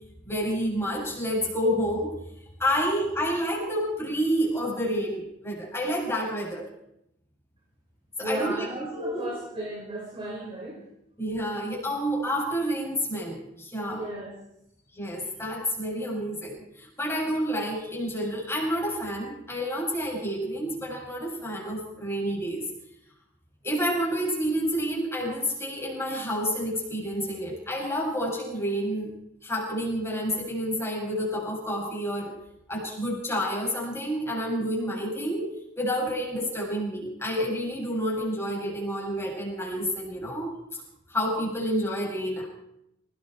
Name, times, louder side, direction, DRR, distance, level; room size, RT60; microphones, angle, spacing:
voice 1, 0.2-2.1 2.6-6.7 8.2-8.6 9.0-9.3 11.2-14.0 14.9-22.6 23.6-29.1 29.4-32.3 32.7-35.5 35.8-40.8 41.1-42.5, equal, 15° left, -3 dB, 7.8 m, -29 dB
voice 2, 8.2-10.8 13.9-14.3, right 1 dB, 30° right, -1 dB, 5.6 m, -35 dB
30.0 x 19.5 x 4.7 m, 0.80 s
head